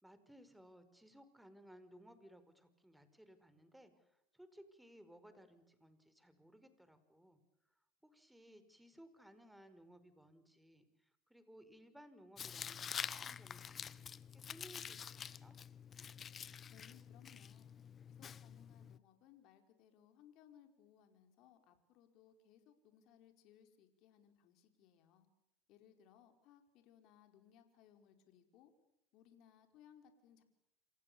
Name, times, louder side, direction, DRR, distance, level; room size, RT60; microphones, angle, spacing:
voice 1, 0.0-7.4 8.0-15.6, equal, 5° right, 11 dB, 5.1 m, -61 dB
Tearing, 12.4-19.0, left 7 dB, 35° left, 1.0 m, -47 dB
voice 2, 16.7-17.7 18.1-25.3 25.7-28.7 29.1-30.4, left 9 dB, 60° left, 6 dB, 5.0 m, -65 dB
28.5 x 28.0 x 7.1 m, 0.79 s
hypercardioid pair, 90°, 0 cm